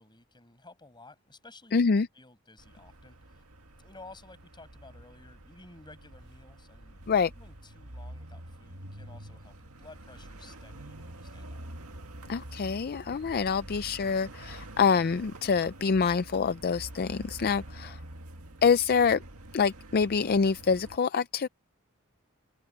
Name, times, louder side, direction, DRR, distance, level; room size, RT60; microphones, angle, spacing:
voice 1, 0.0-3.4 3.8-11.6 17.8-18.0, left 2 dB, 20° left, 7.1 m, -54 dB
voice 2, 1.7-2.1 7.1-7.3 12.3-18.0 18.6-19.2 19.5-21.5, left 5 dB, 45° left, 0.4 m, -26 dB
sound 1, 2.6-21.0, right 1 dB, 75° right, 2.2 m, -47 dB
open air
head